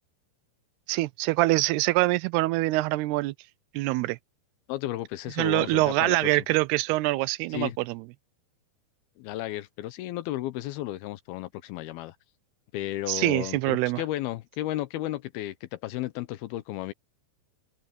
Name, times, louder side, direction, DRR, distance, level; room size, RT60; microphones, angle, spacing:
voice 1, 0.9-3.3 3.7-4.2 5.4-8.0 13.1-14.0, right 19 dB, 85° right, 2.6 m, -24 dB
voice 2, 4.7-6.3 7.5-7.8 9.2-12.2 12.7-16.9, left 15 dB, 75° left, 2.5 m, -33 dB
open air
omnidirectional pair, 4.7 m